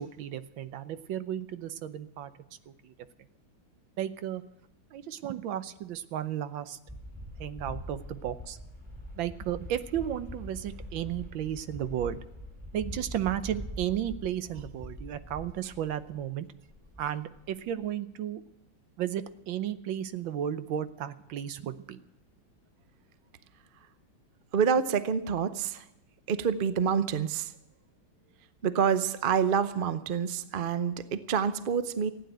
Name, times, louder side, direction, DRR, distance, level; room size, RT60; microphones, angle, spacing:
voice 1, 0.0-2.3 2.7-2.9 4.0-4.4 4.9-6.8 7.4-8.6 9.1-12.2 12.7-16.5 17.0-18.4 19.0-22.0, right 10 dB, 80° right, 12 dB, 1.6 m, -34 dB
sound 1, 6.9-16.3 16.6-17.9, left 1 dB, 15° right, 3.1 m, -43 dB
voice 2, 24.5-25.9 26.3-27.5 28.6-32.1, right 7 dB, 65° right, 12 dB, 0.5 m, -27 dB
15.5 x 9.5 x 9.1 m, 0.87 s
omnidirectional pair, 2.1 m